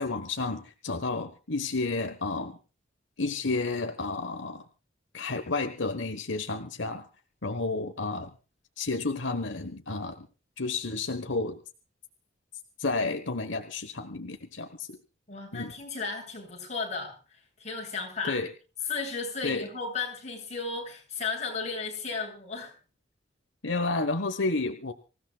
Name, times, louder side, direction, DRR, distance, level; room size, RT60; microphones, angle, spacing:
voice 1, 0.0-2.6 3.2-4.6 5.1-7.1 7.4-8.3 8.8-10.3 10.6-11.6 12.8-15.0 15.5-15.7 18.2-18.5 19.4-19.7 23.6-24.9, left 3 dB, 75° left, 7 dB, 1.3 m, -31 dB
voice 2, 15.3-17.2 17.6-18.4 18.9-22.7, left 4 dB, 40° left, -1 dB, 7.9 m, -34 dB
26.0 x 16.5 x 2.4 m, 0.35 s
head